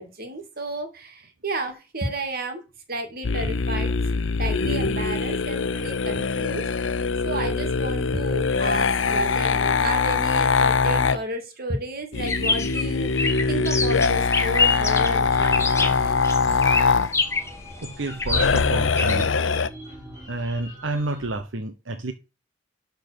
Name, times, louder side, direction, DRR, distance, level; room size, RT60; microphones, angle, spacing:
voice 1, 0.0-2.6 2.9-3.9 4.4-6.9 7.2-16.1, right 2 dB, 55° right, 2.3 m, -32 dB
sound 1, 3.2-11.2 12.1-17.1 18.2-19.7, left 4 dB, 85° left, 0.7 m, -23 dB
sound 2, 12.2-19.2, left 4 dB, 15° left, 1.3 m, -26 dB
sound 3, 15.2-21.4, left 1 dB, 20° right, 3.8 m, -42 dB
voice 2, 17.8-19.3 20.3-22.1, right 2 dB, 75° right, 1.0 m, -30 dB
12.0 x 4.1 x 6.7 m
head